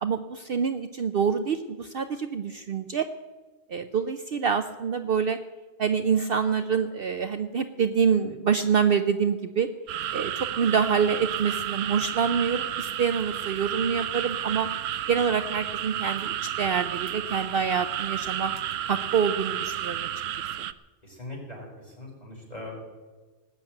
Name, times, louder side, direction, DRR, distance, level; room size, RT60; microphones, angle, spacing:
voice 1, 0.0-3.1 3.7-5.4 5.8-9.7 10.1-14.7 15.1-18.5 18.9-20.1, right 6 dB, 55° right, 9 dB, 0.8 m, -26 dB
sound 1, 9.9-20.7, right 11 dB, 90° right, 1.0 m, -32 dB
voice 2, 21.0-22.8, left 2 dB, 35° left, -3 dB, 5.4 m, -40 dB
19.0 x 7.4 x 9.0 m, 1.3 s
omnidirectional pair, 1.3 m